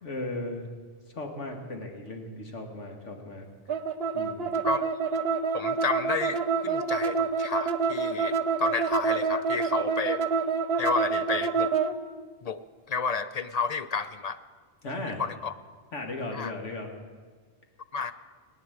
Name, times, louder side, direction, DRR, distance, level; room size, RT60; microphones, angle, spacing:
voice 1, 0.0-0.7 1.1-3.5 4.1-4.5 14.8-15.2 15.9-16.9, left 2 dB, 75° left, 3 dB, 2.0 m, -36 dB
sound 1, 3.7-11.9, right 5 dB, 60° right, 1.0 m, -27 dB
voice 2, 5.5-10.2 10.8-11.7 12.4-12.6 12.9-14.4 15.2-15.5 16.3-16.5 17.9-18.1, left 5 dB, 45° left, 12 dB, 0.5 m, -31 dB
18.5 x 9.5 x 7.8 m, 1.5 s
omnidirectional pair, 1.2 m